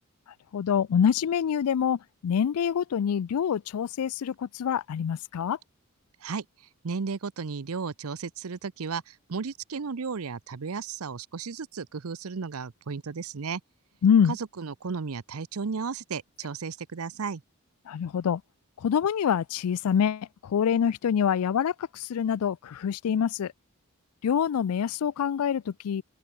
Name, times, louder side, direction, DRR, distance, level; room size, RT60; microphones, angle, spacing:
voice 1, 0.5-5.6 14.0-14.4 17.9-18.4 18.8-23.5 24.2-26.0, left 8 dB, 85° left, 0.4 m, -26 dB
voice 2, 6.8-13.6 14.3-17.4, right 5 dB, 80° right, 0.7 m, -34 dB
open air
head